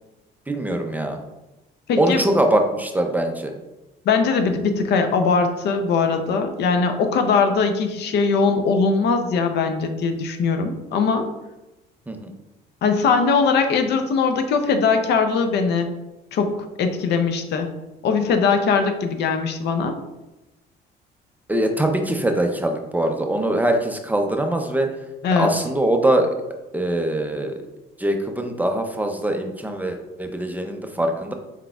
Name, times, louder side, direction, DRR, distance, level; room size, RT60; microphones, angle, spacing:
voice 1, 0.5-1.2 2.0-3.5 12.1-12.3 21.5-24.9 25.4-26.3 26.7-27.6 28.0-31.3, right 1 dB, 10° right, 4 dB, 0.4 m, -22 dB
voice 2, 1.9-2.2 4.1-11.3 12.8-15.9 16.3-16.5 16.8-17.7 18.0-19.9 25.2-25.5, left 5 dB, 65° left, 7 dB, 0.6 m, -20 dB
4.5 x 4.0 x 2.3 m, 1.0 s
cardioid pair, 105°, 19 cm